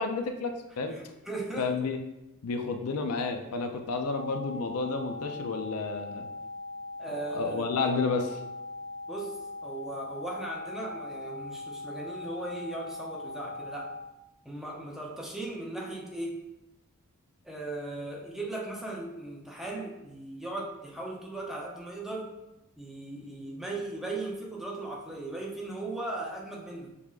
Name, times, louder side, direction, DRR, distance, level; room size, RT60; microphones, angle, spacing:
voice 1, 0.0-0.9 1.6-2.0 2.4-6.3 7.3-8.4, left 4 dB, 80° left, 5 dB, 0.5 m, -31 dB
voice 2, 0.9-1.7 7.0-7.7 9.1-13.9 14.4-16.4 17.4-22.3 22.8-26.9, right 2 dB, ahead, -2 dB, 0.6 m, -37 dB
sound 1, 4.1-14.1, left 2 dB, 55° right, 0.4 m, -40 dB
6.3 x 3.5 x 2.4 m, 0.95 s
head